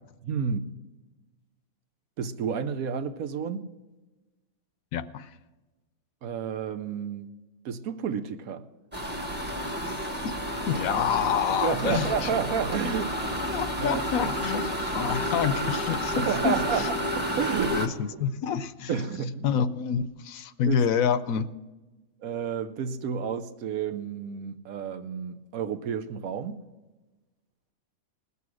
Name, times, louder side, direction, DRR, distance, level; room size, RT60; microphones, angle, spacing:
voice 1, 0.2-0.6 2.2-3.7 6.2-7.3 7.6-8.7 11.6-14.3 16.2-17.8 18.9-19.6 20.7-20.8 22.2-26.6, right 7 dB, 80° right, 1.2 m, -31 dB
voice 2, 4.9-5.3 10.2-10.3 10.7-12.1 13.5-16.9 17.7-18.9 19.4-21.5, left 7 dB, 75° left, 1.0 m, -27 dB
sound 1, 8.9-17.9, equal, 10° right, 1.0 m, -30 dB
19.5 x 6.9 x 6.2 m
omnidirectional pair, 1.5 m